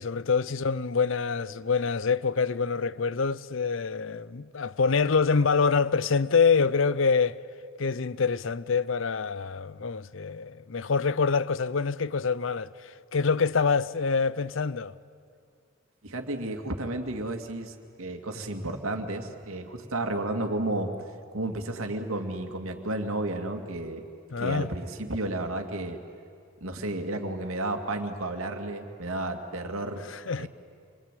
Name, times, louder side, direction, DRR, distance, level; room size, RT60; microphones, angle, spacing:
voice 1, 0.0-7.4 7.8-14.9 24.3-24.7 30.1-30.5, left 5 dB, 70° left, 0.6 m, -26 dB
voice 2, 16.0-20.9 21.3-24.0 24.4-26.0 26.6-30.0 30.4-30.5, right 2 dB, 85° right, 2.3 m, -32 dB
26.5 x 23.5 x 9.2 m
head